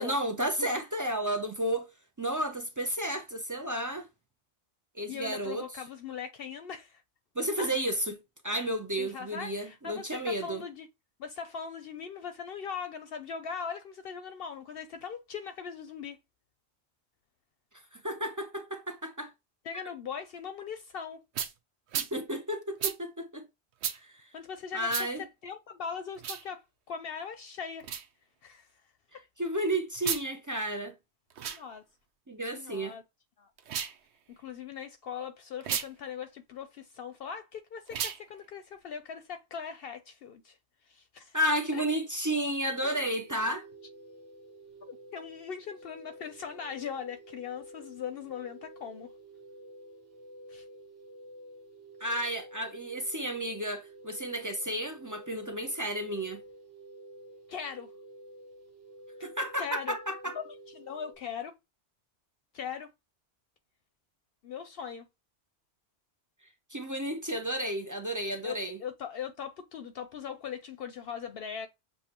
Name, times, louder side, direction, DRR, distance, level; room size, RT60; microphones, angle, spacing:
voice 1, 0.0-1.9 2.2-4.1 5.0-5.7 7.4-8.2 8.4-10.6 17.9-19.3 19.7-19.8 22.0-23.5 24.0-24.2 24.7-25.2 29.4-30.9 32.3-33.0 41.3-43.7 52.0-56.4 59.2-60.4 66.7-68.8, right 1 dB, 25° right, 0.4 m, -32 dB
voice 2, 5.1-7.0 7.6-7.7 9.0-10.9 11.2-16.2 19.6-21.2 24.3-27.9 28.4-28.7 29.1-29.2 31.4-31.8 32.5-33.0 33.4-33.5 34.4-40.6 40.9-41.4 41.7-41.8 44.9-49.1 50.5-50.7 52.0-52.1 57.5-57.9 59.2-59.3 59.6-60.0 60.3-61.5 62.5-62.9 64.4-65.1 68.4-71.7, left 7 dB, 65° left, 0.7 m, -40 dB
sound 1, 21.3-21.5 21.9-22.1 22.8-23.0 23.8-24.0 24.9-25.1 26.2-26.4 27.8-28.1 29.9-30.3 31.3-31.6 33.6-34.0 35.6-35.9 37.9-38.2, right 8 dB, 75° right, 0.9 m, -33 dB
sound 2, 42.8-61.1, right 1 dB, 60° right, 1.2 m, -50 dB
7.0 x 2.3 x 2.9 m
omnidirectional pair, 1.1 m